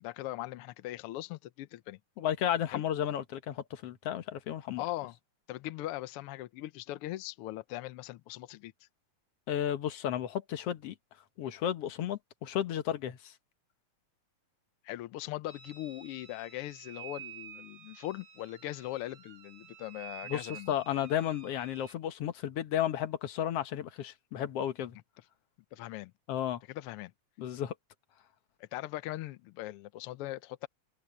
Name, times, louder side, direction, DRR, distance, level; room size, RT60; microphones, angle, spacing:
voice 1, 0.0-2.0 2.7-2.8 4.8-5.2 5.5-8.7 14.8-20.7 25.7-26.1 26.7-27.1 28.6-30.7, left 16 dB, 85° left, 1.2 m, -40 dB
voice 2, 2.2-4.8 9.5-11.0 11.4-13.3 20.3-25.0 26.3-26.6 27.4-27.7, left 10 dB, 60° left, 2.0 m, -33 dB
sound 1, 15.5-21.9, right 9 dB, 55° right, 2.7 m, -50 dB
open air
omnidirectional pair, 3.4 m